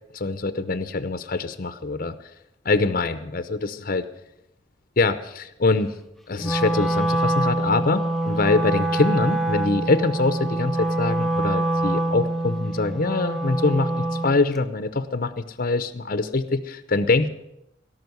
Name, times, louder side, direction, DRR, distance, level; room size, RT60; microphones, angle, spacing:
voice 1, 0.1-2.1 2.6-4.0 5.0-5.9 6.3-17.3, left 3 dB, 50° left, 11 dB, 0.8 m, -24 dB
Wind instrument woodwind instrument, 6.4-14.4, right 1 dB, ahead, 0.6 m, -25 dB
17.5 x 6.1 x 9.4 m, 0.83 s
head